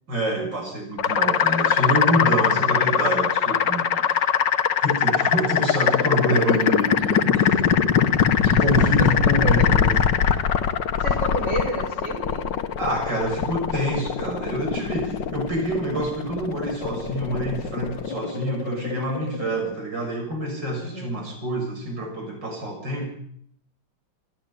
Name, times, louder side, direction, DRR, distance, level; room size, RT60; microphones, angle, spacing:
voice 1, 0.1-4.2 4.8-7.7 8.4-10.0 10.3-10.4 12.8-23.1, right 1 dB, 60° right, 2 dB, 7.2 m, -27 dB
sound 1, 1.0-19.7, left 8 dB, 65° left, 1.8 m, -22 dB
voice 2, 8.8-9.8 11.0-12.5 20.8-21.1, right 1 dB, 35° right, 4 dB, 5.5 m, -31 dB
27.5 x 11.5 x 8.7 m, 0.68 s
omnidirectional pair, 2.2 m